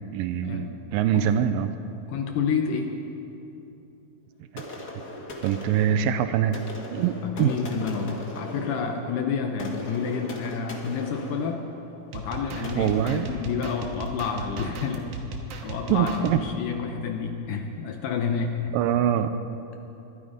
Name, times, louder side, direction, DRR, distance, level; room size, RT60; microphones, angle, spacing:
voice 1, 0.1-1.7 4.5-4.6 5.4-6.6 6.9-7.5 12.8-13.3 15.9-16.4 18.7-19.3, right 9 dB, 85° right, 10 dB, 2.0 m, -24 dB
voice 2, 2.1-3.0 7.2-11.6 12.1-15.1 15.6-18.7, left 6 dB, 75° left, 4 dB, 2.1 m, -29 dB
sound 1, 4.6-14.2, left 1 dB, 50° left, 1.1 m, -40 dB
sound 2, 12.1-16.4, right 3 dB, 65° right, 2.3 m, -37 dB
21.0 x 13.0 x 5.1 m, 2.9 s
omnidirectional pair, 4.5 m